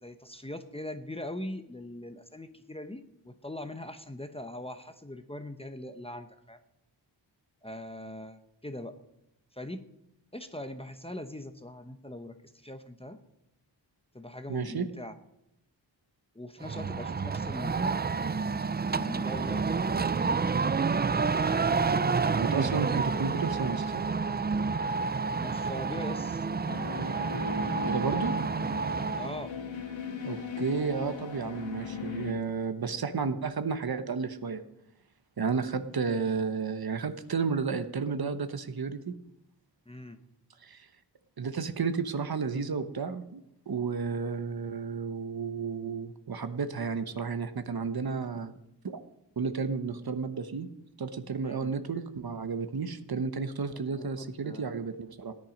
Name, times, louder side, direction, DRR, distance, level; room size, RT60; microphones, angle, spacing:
voice 1, 0.0-6.6 7.6-9.0 9.5-9.8 10.3-13.2 14.1-15.1 16.3-17.9 18.9-21.0 25.4-26.5 29.2-29.6 39.9-40.2 51.4-51.8 53.7-54.7, left 1 dB, 15° left, 8 dB, 0.8 m, -41 dB
voice 2, 14.5-14.9 22.4-24.0 27.8-28.3 30.2-34.6 35.4-39.2 40.6-40.9 41.4-48.5 48.8-49.0 49.4-50.7 51.0-55.3, right 5 dB, 55° right, 10 dB, 1.0 m, -32 dB
sound 1, 16.6-29.4, right 4 dB, 25° right, 0.4 m, -29 dB
sound 2, 26.7-32.3, left 5 dB, 80° left, 1.6 m, -39 dB
16.0 x 10.5 x 5.2 m, 0.83 s
wide cardioid pair, 120°, 45 cm